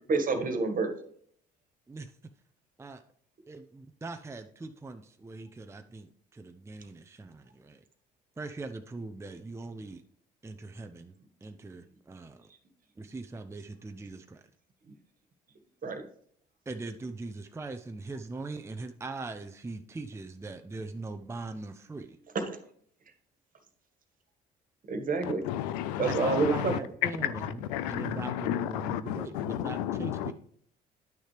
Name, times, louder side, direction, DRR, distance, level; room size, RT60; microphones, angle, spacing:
voice 1, 0.1-0.9 15.8-16.0 22.3-22.6 24.9-25.4 26.0-26.7, right 4 dB, 45° right, 1.6 m, -28 dB
voice 2, 3.5-7.8 8.4-10.0 10.4-11.1 11.4-12.5 13.0-14.4 16.7-22.2 26.0-30.3, right 3 dB, 15° right, 0.6 m, -41 dB
voice 3, 25.2-30.3, left 12 dB, 85° left, 0.5 m, -32 dB
10.0 x 6.3 x 3.3 m
hypercardioid pair, 65°, 20 cm